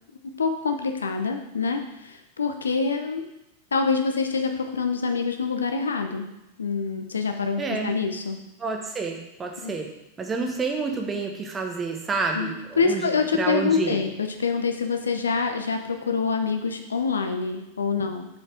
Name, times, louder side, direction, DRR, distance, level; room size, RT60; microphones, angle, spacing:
voice 1, 0.4-3.2 3.7-6.3 6.6-8.4 9.6-9.7 12.3-12.5 12.8-18.3, left 5 dB, 70° left, 6 dB, 0.7 m, -26 dB
voice 2, 7.6-7.9 8.6-9.9 10.2-13.1 13.4-14.0, right 4 dB, 20° right, 2 dB, 1.1 m, -29 dB
6.1 x 4.8 x 4.9 m, 0.88 s
figure-of-eight pair, 90°, 0 cm